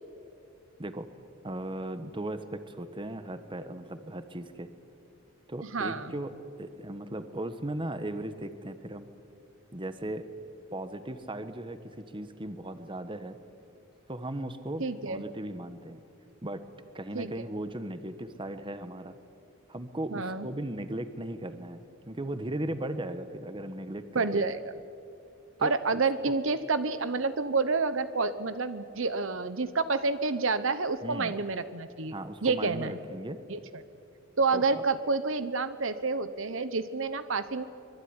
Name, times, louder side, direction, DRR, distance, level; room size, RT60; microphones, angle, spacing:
voice 1, 1.4-4.7 5.5-6.3 6.6-9.1 9.7-10.2 10.7-13.4 14.1-16.0 16.4-16.6 16.9-19.2 19.7-24.5 25.6-26.0 26.3-26.4 31.0-31.3 32.1-33.4 34.5-34.8, right 1 dB, 25° right, 10 dB, 1.3 m, -37 dB
voice 2, 5.6-6.1 14.8-15.2 17.1-17.3 20.1-20.5 24.1-24.6 25.6-32.1 32.4-33.0 33.5-33.8 34.4-37.6, right 4 dB, 65° right, 12 dB, 1.1 m, -29 dB
25.0 x 21.5 x 9.8 m, 2.5 s
head